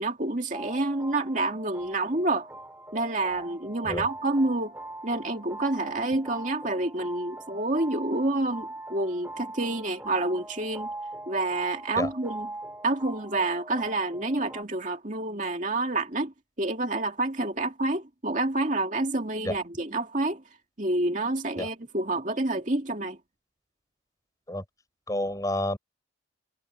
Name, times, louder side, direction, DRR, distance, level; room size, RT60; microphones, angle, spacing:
voice 1, 0.0-2.5 2.9-4.7 5.0-10.9 11.3-12.5 12.8-16.3 16.6-20.4 20.8-23.2, right 2 dB, 40° right, 2.4 m, -28 dB
sound 1, 0.5-14.6, right 2 dB, 10° right, 3.3 m, -42 dB
voice 2, 25.1-25.8, left 1 dB, 20° left, 5.7 m, -29 dB
head